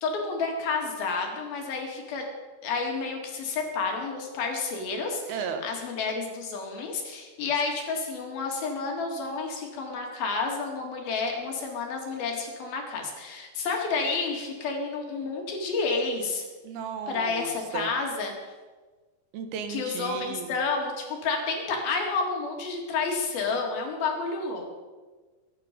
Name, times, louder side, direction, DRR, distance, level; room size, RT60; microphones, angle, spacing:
voice 1, 0.0-2.2 2.6-16.4 17.1-18.3 19.7-24.8, left 4 dB, 75° left, 2 dB, 4.1 m, -30 dB
voice 2, 5.3-5.6 16.6-17.9 19.3-20.6, right 6 dB, 85° right, 6 dB, 3.3 m, -35 dB
22.5 x 9.2 x 5.3 m, 1.3 s
omnidirectional pair, 4.3 m